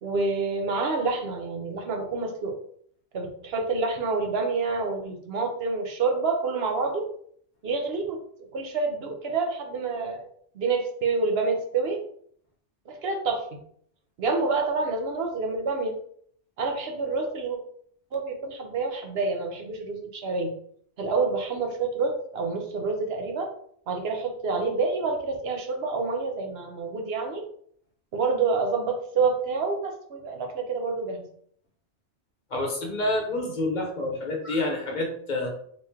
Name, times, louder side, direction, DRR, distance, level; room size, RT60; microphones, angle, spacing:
voice 1, 0.0-2.6 3.1-7.1 7.6-8.2 8.5-10.3 10.5-12.0 12.9-13.5 14.2-15.9 16.6-17.6 18.1-20.5 21.0-23.5 23.9-27.4 28.1-31.2, right 4 dB, 65° right, 3 dB, 0.8 m, -28 dB
voice 2, 32.5-35.5, left 2 dB, 45° left, 1 dB, 0.9 m, -28 dB
3.1 x 2.9 x 3.5 m, 0.63 s
omnidirectional pair, 1.2 m